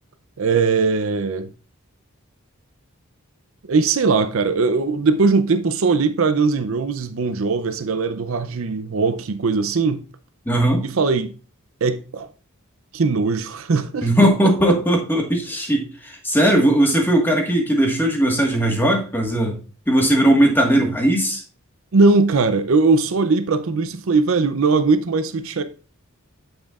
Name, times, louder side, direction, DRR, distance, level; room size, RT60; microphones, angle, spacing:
voice 1, 0.4-1.5 3.7-10.0 10.8-11.3 11.8-12.3 12.9-14.1 21.9-25.6, right 4 dB, 60° right, 0.5 m, -20 dB
voice 2, 10.4-10.9 14.0-19.6 19.9-21.4, right 1 dB, 10° left, 1.5 m, -18 dB
8.7 x 7.2 x 2.4 m
head